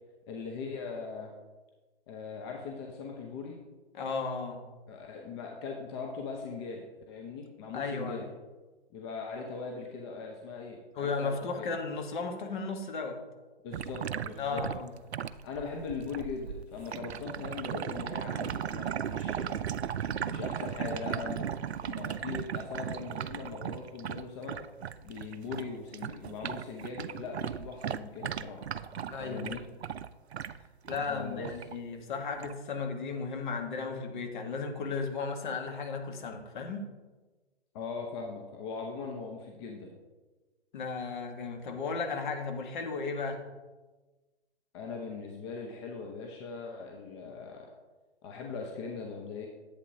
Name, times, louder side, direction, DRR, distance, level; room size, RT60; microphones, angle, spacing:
voice 1, 0.3-1.3 2.1-3.6 4.9-8.3 8.9-11.7 13.6-14.6 15.4-19.6 20.3-21.5 21.8-24.6 25.0-28.6 29.2-29.6 31.0-31.5 37.7-39.9 44.7-47.7 48.2-49.5, left 5 dB, 25° left, 0 dB, 0.8 m, -40 dB
voice 2, 3.9-4.6 7.7-8.2 10.9-13.2 14.4-14.9 29.0-29.6 30.9-36.8 40.7-43.4, left 4 dB, 45° left, 3 dB, 1.4 m, -35 dB
sound 1, 13.7-25.7 25.9-31.1 31.4-31.8 32.4-32.5, right 9 dB, 70° right, 0.5 m, -37 dB
11.0 x 8.2 x 2.8 m, 1.3 s
figure-of-eight pair, 130°, 33 cm